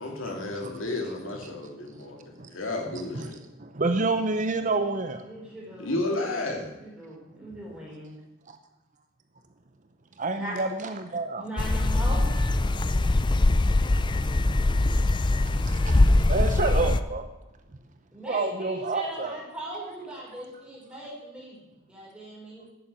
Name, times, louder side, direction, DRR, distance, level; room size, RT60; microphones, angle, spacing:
voice 1, 0.0-3.4 5.8-6.7, left 2 dB, 75° left, 2.5 m, -32 dB
voice 2, 2.9-5.3 8.5-8.6 10.2-11.5 15.4-17.2 18.2-19.4, right 3 dB, 40° right, 0.8 m, -29 dB
voice 3, 5.2-6.0 6.7-8.1 10.3-10.5 11.4-12.9 16.5-17.0 18.1-21.6 21.9-22.7, right 1 dB, 5° right, 4.6 m, -39 dB
sound 1, 11.6-17.0, left 2 dB, 25° left, 0.4 m, -22 dB
11.0 x 7.6 x 8.8 m
head